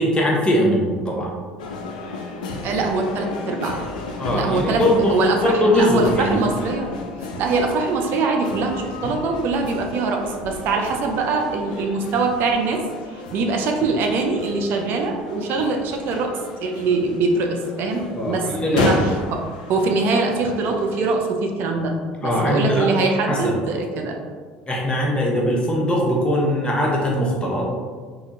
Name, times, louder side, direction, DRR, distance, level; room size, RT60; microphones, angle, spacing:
voice 1, 0.0-1.3 4.2-6.5 18.1-18.9 22.2-22.9 23.3-23.5 24.7-27.8, equal, 25° left, -2 dB, 0.8 m, -21 dB
sound 1, 1.6-21.2, left 2 dB, 85° left, 0.3 m, -32 dB
voice 2, 2.6-3.8 4.3-6.9 7.4-12.8 13.1-19.4 19.7-21.9 22.2-24.2, right 3 dB, 60° right, 2 dB, 0.4 m, -23 dB
3.5 x 2.2 x 2.6 m, 1.6 s
hypercardioid pair, 65°, 4 cm